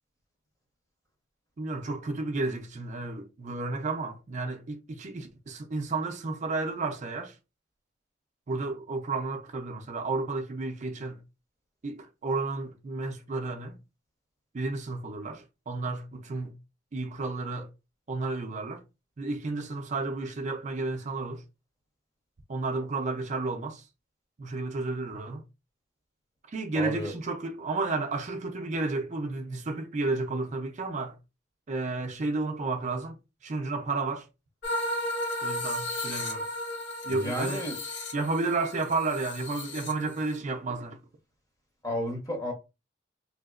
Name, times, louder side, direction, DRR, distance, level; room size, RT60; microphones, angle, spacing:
voice 1, 1.6-7.4 8.5-11.2 11.8-13.8 14.5-16.6 16.9-17.7 18.1-18.8 19.2-21.4 22.5-23.9 24.4-25.4 26.5-31.2 31.7-34.3 35.4-36.5 37.0-37.7 38.1-41.0, right 3 dB, 40° right, 0.4 m, -32 dB
voice 2, 26.7-27.1 37.1-37.8 41.8-42.5, equal, 20° left, 0.9 m, -32 dB
sound 1, 34.6-40.4, left 1 dB, 75° left, 0.7 m, -34 dB
3.3 x 2.8 x 2.4 m
head